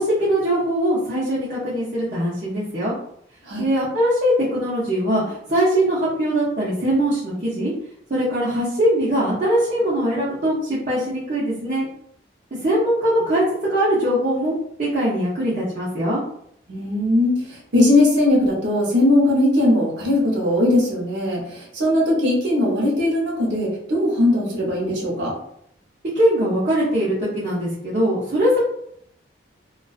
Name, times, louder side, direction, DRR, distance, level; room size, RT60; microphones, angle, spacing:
voice 1, 0.0-3.0 3.6-7.7 8.1-11.9 12.5-14.5 14.8-16.2 26.1-28.6, equal, 40° right, -8 dB, 0.6 m, -21 dB
voice 2, 16.7-17.5 17.7-25.3, left 1 dB, 70° right, -3 dB, 0.9 m, -19 dB
2.3 x 2.2 x 2.4 m, 0.70 s
head